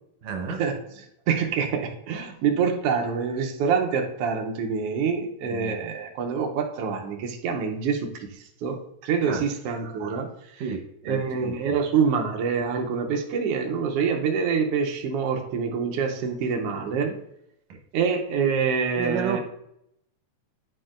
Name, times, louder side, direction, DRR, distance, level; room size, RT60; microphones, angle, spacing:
voice 1, 0.2-0.6 5.4-5.8 9.2-9.4 10.6-10.8 11.1-11.5 19.0-19.4, right 5 dB, 70° right, 3 dB, 1.9 m, -31 dB
voice 2, 1.3-10.6 11.0-17.2 17.9-19.4, right 6 dB, 85° right, 2 dB, 1.3 m, -26 dB
9.7 x 4.5 x 2.5 m, 0.77 s
omnidirectional pair, 3.7 m